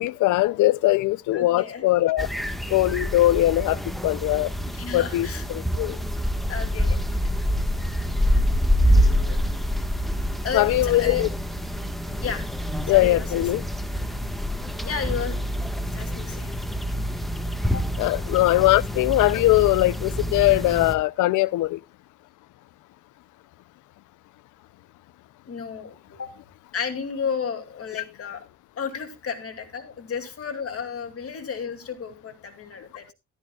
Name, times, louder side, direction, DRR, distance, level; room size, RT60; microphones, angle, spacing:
voice 1, 0.0-2.3 2.7-4.5 4.9-6.0 10.5-11.3 12.9-13.6 18.0-21.8, left 17 dB, 80° left, 0.5 m, -21 dB
voice 2, 1.3-1.8 4.7-5.4 6.5-7.0 7.2-7.3 8.8-9.4 10.4-11.3 12.2-12.4 12.8-13.3 14.8-15.4 15.9-16.5 17.6-17.9 25.5-26.3 26.7-28.4 28.7-33.1, left 6 dB, 50° left, 2.5 m, -32 dB
sound 1, 2.2-20.9, equal, ahead, 1.3 m, -26 dB
14.0 x 13.0 x 2.3 m
cardioid pair, 90°, 30 cm